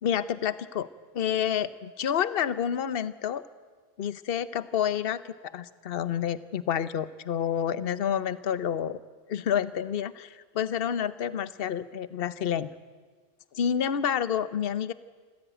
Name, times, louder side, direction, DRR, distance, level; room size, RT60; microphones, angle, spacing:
voice 1, 0.0-0.9 1.1-3.5 4.0-9.0 9.3-12.7 13.5-14.9, left 8 dB, 55° left, 15 dB, 1.0 m, -29 dB
27.0 x 15.0 x 9.0 m, 1.5 s
omnidirectional pair, 1.2 m